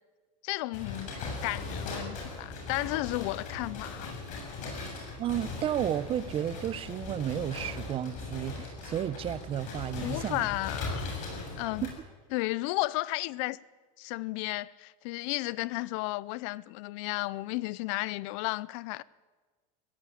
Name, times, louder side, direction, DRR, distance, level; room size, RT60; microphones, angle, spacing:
voice 1, 0.4-1.1 1.4-4.1 10.0-11.1 11.6-11.9 12.3-13.6 14.0-19.0, left 21 dB, 65° left, 0.6 m, -33 dB
sound 1, 0.7-11.9, left 3 dB, 45° left, 7.3 m, -39 dB
voice 2, 5.2-10.5 11.8-11.9, right 10 dB, 30° right, 0.8 m, -32 dB
20.0 x 16.5 x 8.6 m
supercardioid pair, 140°, 18 cm